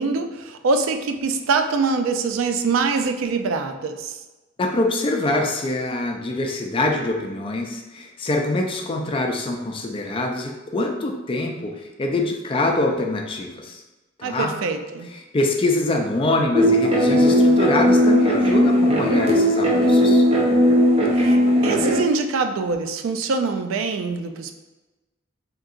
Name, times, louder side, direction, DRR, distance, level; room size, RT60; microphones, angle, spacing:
voice 1, 0.0-4.2 14.2-15.1 21.1-24.5, right 4 dB, 90° right, 7 dB, 0.3 m, -24 dB
voice 2, 4.6-13.8 14.2-14.5 15.3-20.2, left 2 dB, 25° left, 2 dB, 0.4 m, -24 dB
sound 1, 16.5-22.0, equal, 30° right, 0.6 m, -17 dB
3.7 x 2.7 x 2.4 m, 1.1 s
head